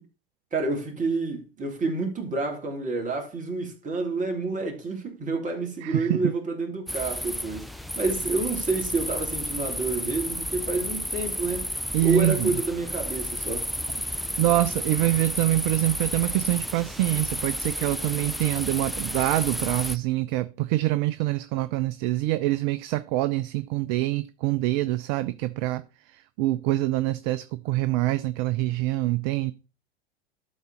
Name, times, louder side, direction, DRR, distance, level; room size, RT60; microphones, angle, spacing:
voice 1, 0.5-7.7 7.9-11.7 12.0-13.7, right 3 dB, 25° right, 3.2 m, -28 dB
voice 2, 5.8-6.3 11.9-12.5 14.4-29.5, right 16 dB, 50° right, 0.6 m, -25 dB
sound 1, 6.9-20.0, equal, ahead, 0.4 m, -32 dB
12.0 x 4.0 x 5.1 m
hypercardioid pair, 90°, 30 cm